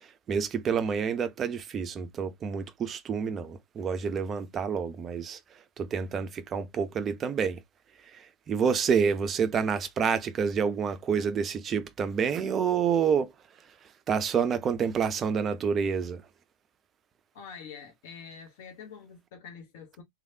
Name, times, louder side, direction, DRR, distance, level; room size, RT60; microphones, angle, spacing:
voice 1, 0.3-5.4 5.8-7.6 8.1-13.3 14.1-16.2, right 6 dB, 25° right, 0.4 m, -28 dB
voice 2, 17.3-20.0, left 6 dB, 50° left, 0.9 m, -46 dB
3.1 x 2.3 x 2.6 m
figure-of-eight pair, 90°, 0 cm